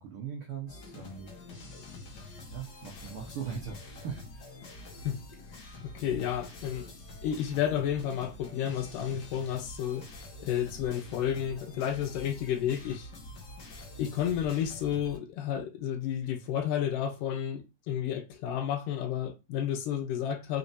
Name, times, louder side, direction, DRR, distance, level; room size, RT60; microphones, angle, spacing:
voice 1, 0.0-1.3 2.5-4.9, right 7 dB, 75° right, 1.2 m, -40 dB
sound 1, 0.7-15.2, left 2 dB, 60° left, 1.1 m, -46 dB
voice 2, 5.8-6.9 7.2-10.1 10.4-13.1 14.0-20.6, left 10 dB, 80° left, 2.5 m, -31 dB
5.6 x 3.4 x 2.6 m
omnidirectional pair, 3.8 m